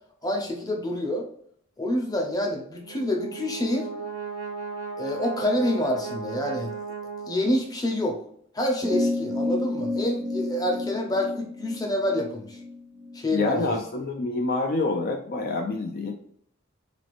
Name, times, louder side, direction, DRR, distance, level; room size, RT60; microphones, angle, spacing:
voice 1, 0.2-1.3 1.8-3.9 5.0-6.7 7.3-8.2 8.5-12.6 13.1-13.6, left 1 dB, 20° left, 1 dB, 0.7 m, -27 dB
Brass instrument, 2.8-7.8, right 5 dB, 70° right, 0.8 m, -36 dB
sound 1, 8.8-13.7, left 2 dB, 25° right, 0.4 m, -30 dB
voice 2, 13.3-16.1, left 3 dB, 45° left, 2 dB, 0.4 m, -27 dB
3.9 x 3.3 x 2.5 m, 0.65 s
head